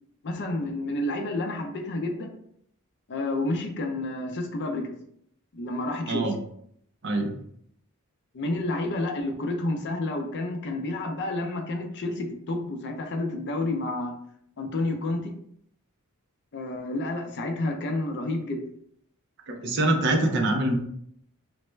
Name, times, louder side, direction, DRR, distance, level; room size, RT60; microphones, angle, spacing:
voice 1, 0.2-2.3 3.1-4.9 5.5-6.3 8.3-14.1 14.6-15.3 16.5-18.6, left 2 dB, 50° left, 4 dB, 0.5 m, -30 dB
voice 2, 7.0-7.4 19.5-20.8, right 2 dB, 55° right, 4 dB, 0.5 m, -24 dB
3.2 x 2.1 x 3.1 m, 0.69 s
head